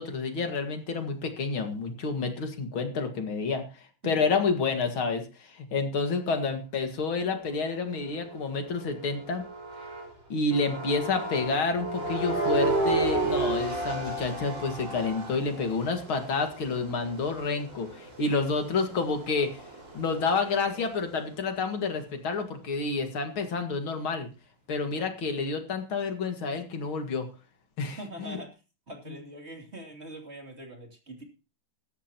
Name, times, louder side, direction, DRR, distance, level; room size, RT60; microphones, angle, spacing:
voice 1, 0.0-3.6 4.0-9.4 10.3-19.6 19.9-24.3 24.7-27.3 27.8-28.4 29.1-29.2, left 4 dB, 85° left, 5 dB, 2.8 m, -29 dB
sound 1, 7.3-10.1 10.5-20.9, right 2 dB, 70° right, 7.0 m, -33 dB
voice 2, 28.0-28.5 28.9-31.2, right 1 dB, 30° right, 3 dB, 3.1 m, -43 dB
17.5 x 13.5 x 3.0 m, 0.31 s
omnidirectional pair, 2.2 m